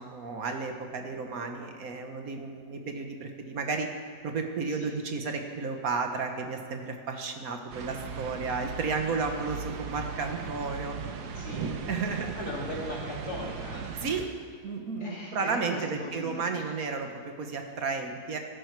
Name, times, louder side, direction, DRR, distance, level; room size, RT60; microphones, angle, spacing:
voice 1, 0.0-3.9 4.2-11.0 11.9-12.4 13.9-14.3 14.6-18.4, right 4 dB, 65° right, 4 dB, 1.6 m, -33 dB
sound 1, 7.7-14.3, right 6 dB, 85° right, 1.5 m, -38 dB
voice 2, 11.4-11.7 12.4-13.9 15.0-16.4, left 1 dB, 80° left, -4 dB, 3.5 m, -38 dB
17.0 x 12.0 x 4.7 m, 2.2 s
omnidirectional pair, 1.7 m